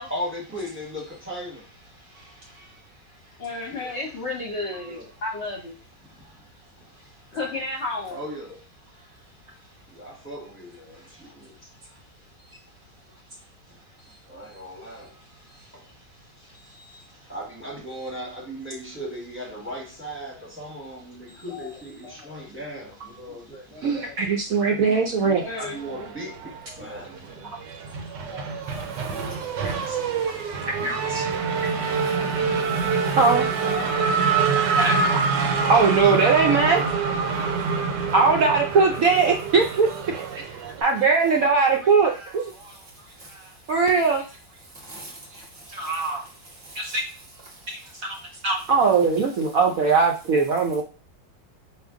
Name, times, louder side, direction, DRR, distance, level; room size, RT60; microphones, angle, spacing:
voice 1, 0.1-1.6 3.7-3.9 4.8-5.1 8.1-8.6 9.9-11.5 14.3-15.2 15.7-15.9 17.3-23.8 24.6-27.5, equal, 10° right, 1.0 m, -37 dB
voice 2, 3.4-5.8 7.3-8.2 21.5-21.7 22.0-22.4 23.3-23.4 23.7-24.2 24.6-26.1 28.3-28.6 28.9-29.0 33.6-33.9 49.4-49.6 50.3-50.4, left 2 dB, 50° left, 0.9 m, -34 dB
voice 3, 23.8-25.4 29.9-30.0 30.7-31.2 33.2-33.5 34.8-35.2 35.7-36.8 37.4-37.5 38.1-39.9 40.4-40.5 40.8-42.7 43.3-44.2 45.3-45.4 45.7-46.2 46.7-47.1 47.7-48.2 48.4-50.8, right 4 dB, 65° right, 0.9 m, -21 dB
Race car auto racing / Accelerating revving vroom, 25.8-26.8 27.1-40.8, right 5 dB, 80° right, 1.3 m, -25 dB
voice 4, 29.0-31.0 31.4-33.2 34.8-34.9 43.2-43.3 44.8-46.1 46.6-46.9, right 1 dB, 15° left, 0.4 m, -45 dB
4.5 x 2.5 x 3.5 m
omnidirectional pair, 1.9 m